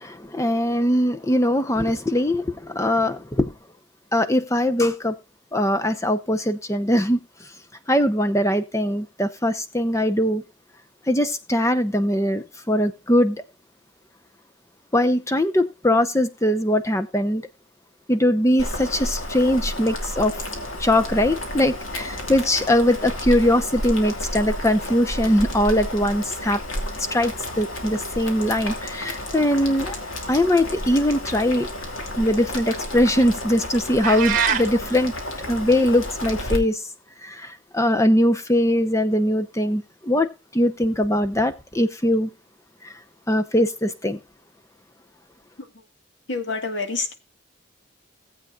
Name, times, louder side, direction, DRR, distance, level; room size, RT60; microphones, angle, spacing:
voice 1, 0.0-3.5 4.1-5.1 5.5-7.2 7.9-10.4 11.1-13.4 14.9-17.4 18.1-20.3 20.8-26.6 27.1-29.9 30.3-31.7 32.2-35.1 35.5-36.7 37.2-40.3 40.5-42.3 43.3-44.2, left 1 dB, 15° left, 0.8 m, -21 dB
Boiling, 18.6-36.6, left 1 dB, 85° left, 2.6 m, -31 dB
sound 1, 34.0-34.7, right 7 dB, 40° right, 1.7 m, -22 dB
voice 2, 46.3-47.1, left 3 dB, 60° left, 1.8 m, -27 dB
18.0 x 8.1 x 2.4 m
head